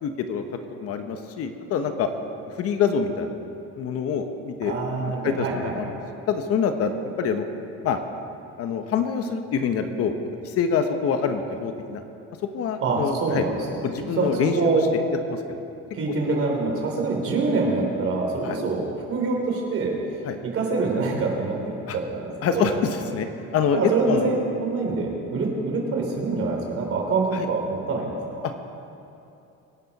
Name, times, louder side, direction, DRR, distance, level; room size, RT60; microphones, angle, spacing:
voice 1, 0.0-0.4 0.8-2.1 2.6-3.3 3.8-6.0 6.3-6.9 7.2-7.5 7.8-8.0 8.6-10.1 10.4-12.0 12.5-13.5 13.8-14.6 14.9-15.0 15.3-15.6 18.4-18.6 20.2-20.4 21.9-22.0 22.4-23.3 23.5-24.3 27.3-27.5, left 6 dB, 55° left, 7 dB, 1.1 m, -25 dB
voice 2, 4.6-5.8 12.8-13.9 14.2-14.9 15.9-21.6 21.9-22.7 23.7-28.4, right 3 dB, 50° right, 0 dB, 3.3 m, -25 dB
24.0 x 10.5 x 4.2 m, 2.8 s
cardioid pair, 150°, 29 cm